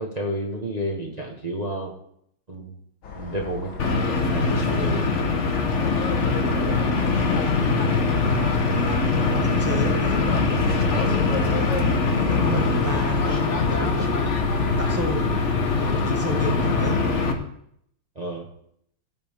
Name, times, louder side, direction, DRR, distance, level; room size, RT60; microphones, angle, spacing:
voice 1, 0.0-1.9 2.5-2.8 3.1-5.1 18.1-18.5, right 1 dB, 25° right, -1 dB, 1.2 m, -31 dB
sound 1, 3.0-14.8, left 6 dB, 85° left, 2.3 m, -39 dB
sound 2, 3.8-17.3, left 4 dB, 40° left, 1.3 m, -22 dB
voice 2, 6.4-11.8 12.1-15.5 15.8-17.0, right 1 dB, 10° right, 1 dB, 1.6 m, -32 dB
18.5 x 7.6 x 3.6 m, 0.71 s
omnidirectional pair, 2.2 m